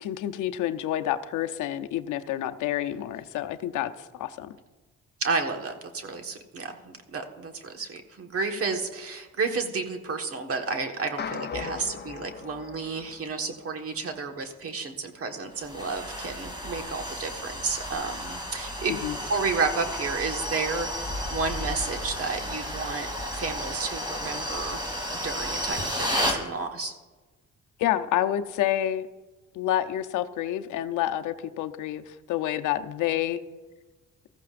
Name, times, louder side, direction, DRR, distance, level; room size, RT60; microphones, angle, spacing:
voice 1, 0.0-3.9 4.2-4.5 18.9-19.2 27.8-29.1 29.5-33.4, left 12 dB, 85° left, 8 dB, 0.7 m, -28 dB
voice 2, 5.2-19.0 19.3-23.1 23.3-24.8 25.1-26.9, right 4 dB, 50° right, 4 dB, 1.5 m, -31 dB
sound 1, 11.2-13.7, left 7 dB, 35° left, 0.6 m, -38 dB
sound 2, 15.6-26.4, equal, 15° right, 2.8 m, -32 dB
18.0 x 14.0 x 2.5 m, 1.3 s
cardioid pair, 90°, 30 cm